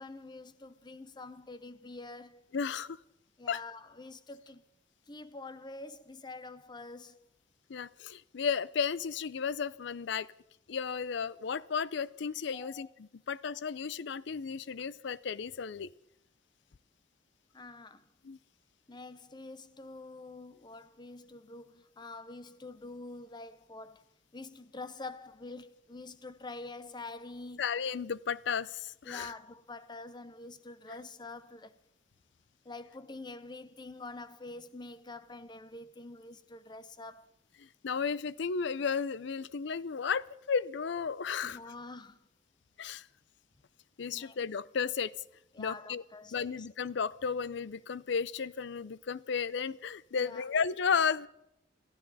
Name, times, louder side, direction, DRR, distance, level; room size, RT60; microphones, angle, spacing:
voice 1, 0.0-2.5 3.4-4.6 5.1-7.2 12.5-12.9 17.5-18.1 18.9-24.0 24.3-27.7 29.0-31.7 32.6-37.3 41.4-42.2 44.1-44.4 45.5-46.7 50.1-50.4, left 3 dB, 25° left, 0.7 m, -46 dB
voice 2, 2.5-3.0 3.5-3.6 7.7-10.3 10.7-15.9 18.2-18.4 27.6-29.3 30.9-31.0 37.6-41.6 42.8-43.1 44.0-45.1 45.6-46.0 46.3-51.3, left 6 dB, 65° left, 0.5 m, -33 dB
27.5 x 13.0 x 4.1 m
head